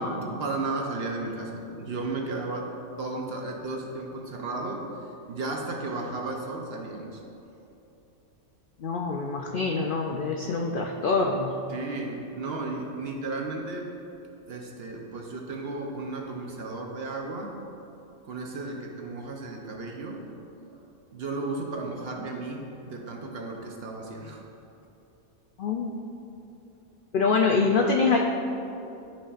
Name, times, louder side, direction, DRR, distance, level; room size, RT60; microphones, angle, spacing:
voice 1, 0.0-2.7 3.0-4.9 5.3-7.2 11.7-14.0 14.5-17.6 18.2-20.4 20.7-20.8 21.1-24.4, right 2 dB, 55° right, 1 dB, 0.8 m, -34 dB
voice 2, 8.8-11.6 25.6-25.9 27.1-28.2, left 4 dB, 75° left, 1 dB, 0.4 m, -25 dB
12.5 x 5.2 x 2.5 m, 2.8 s
omnidirectional pair, 1.5 m